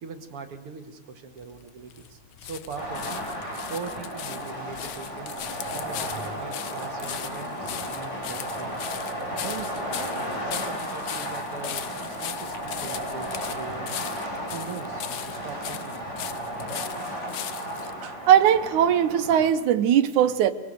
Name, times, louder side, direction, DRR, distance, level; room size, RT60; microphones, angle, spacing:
voice 1, 0.0-2.2 2.5-3.2 3.7-8.8 9.4-9.9 10.5-14.0 14.5-16.9, right 5 dB, 50° right, 7 dB, 2.5 m, -41 dB
sound 1, 1.4-17.9 18.7-18.8, left 11 dB, 80° left, 1.1 m, -38 dB
sound 2, 2.8-19.5, equal, 20° left, 5.1 m, -34 dB
voice 2, 17.8-20.5, right 10 dB, 80° right, 10 dB, 2.6 m, -20 dB
25.0 x 23.0 x 6.7 m, 1.3 s
omnidirectional pair, 3.4 m